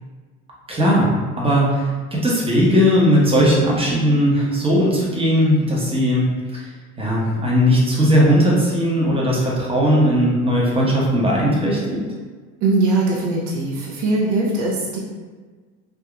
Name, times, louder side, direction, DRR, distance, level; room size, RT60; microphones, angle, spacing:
voice 1, 0.7-6.7 7.0-12.0, equal, 15° right, -4 dB, 1.0 m, -18 dB
voice 2, 12.6-15.0, right 2 dB, 55° right, -5 dB, 0.9 m, -20 dB
3.6 x 2.7 x 2.3 m, 1.4 s
supercardioid pair, 85°, 35 cm